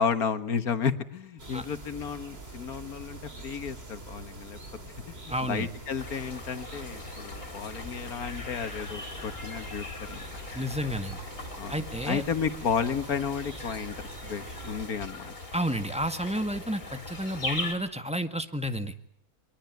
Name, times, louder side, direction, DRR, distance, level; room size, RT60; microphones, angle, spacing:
voice 1, 0.0-4.6 5.1-10.2 11.6-15.4, left 6 dB, 80° left, 11 dB, 2.0 m, -32 dB
sound 1, 1.4-14.9, right 2 dB, 40° right, 3.2 m, -44 dB
voice 2, 5.3-5.7 10.5-11.2 11.7-12.2 15.5-19.1, equal, 5° right, 8 dB, 1.6 m, -31 dB
sound 2, 6.0-17.7, left 2 dB, 60° left, 4.4 m, -40 dB
24.0 x 23.0 x 9.3 m, 0.65 s
omnidirectional pair, 1.5 m